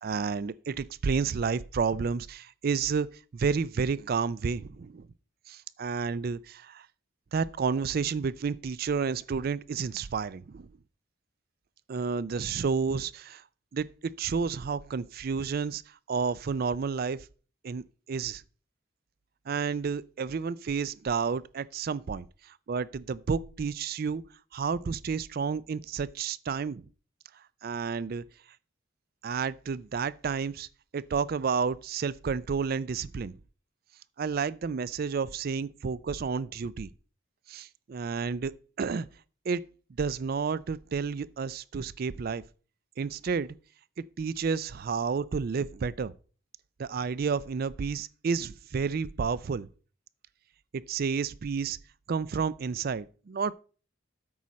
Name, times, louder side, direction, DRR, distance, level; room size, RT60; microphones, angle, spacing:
voice 1, 0.0-3.1 3.3-5.1 5.5-6.9 7.3-10.7 11.9-13.4 13.7-13.9 14.2-15.8 16.1-17.2 17.6-18.4 19.5-22.3 22.7-24.2 24.5-26.8 27.6-28.2 29.2-30.7 30.9-33.3 34.2-36.9 37.5-38.5 38.8-39.1 39.5-39.6 40.0-42.4 43.0-43.6 44.2-46.1 46.8-49.7 50.7-51.8 52.1-53.5, right 5 dB, 45° right, 0.3 m, -30 dB
8.5 x 6.2 x 4.1 m
head